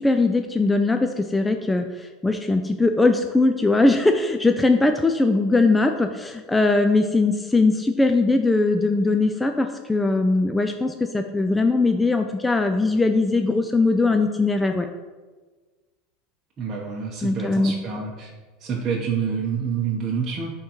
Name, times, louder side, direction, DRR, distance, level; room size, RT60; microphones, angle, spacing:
voice 1, 0.0-14.9 17.2-17.7, left 3 dB, 10° left, 5 dB, 0.3 m, -20 dB
voice 2, 16.6-18.3 18.6-20.5, right 6 dB, 30° right, -3 dB, 0.9 m, -27 dB
9.6 x 3.7 x 3.0 m, 1.3 s
supercardioid pair, 120°, 0 cm